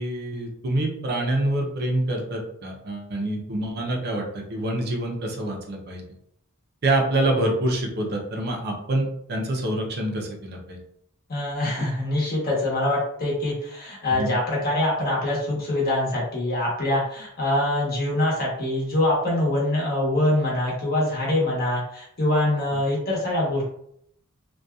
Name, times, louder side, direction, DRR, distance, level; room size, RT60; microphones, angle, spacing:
voice 1, 0.0-6.0 6.8-10.8 14.2-14.3, right 1 dB, 50° right, 1 dB, 0.5 m, -26 dB
voice 2, 11.3-23.6, left 1 dB, 45° left, -4 dB, 1.0 m, -24 dB
2.6 x 2.2 x 2.3 m, 0.71 s
head